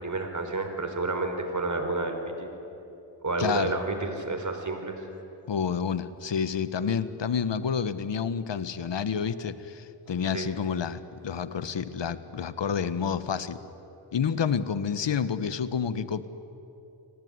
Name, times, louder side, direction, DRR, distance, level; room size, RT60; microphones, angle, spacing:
voice 1, 0.0-2.5 3.2-5.0 10.3-10.5, right 2 dB, 35° right, 6 dB, 4.6 m, -30 dB
voice 2, 3.4-3.7 5.5-13.6 14.1-16.3, left 7 dB, 55° left, 13 dB, 1.5 m, -29 dB
29.5 x 19.5 x 9.8 m, 2.9 s
cardioid pair, 65°, 50 cm